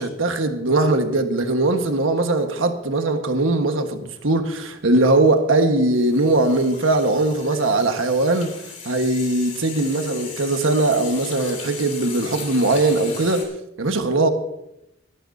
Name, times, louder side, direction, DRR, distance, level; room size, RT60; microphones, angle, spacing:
voice 1, 0.0-8.5 8.8-13.4 13.8-14.3, right 2 dB, 90° right, 1.4 m, -20 dB
sound 1, 4.8-4.9 5.1-13.5, left 5 dB, 35° left, 3.0 m, -37 dB
22.0 x 11.5 x 2.8 m
head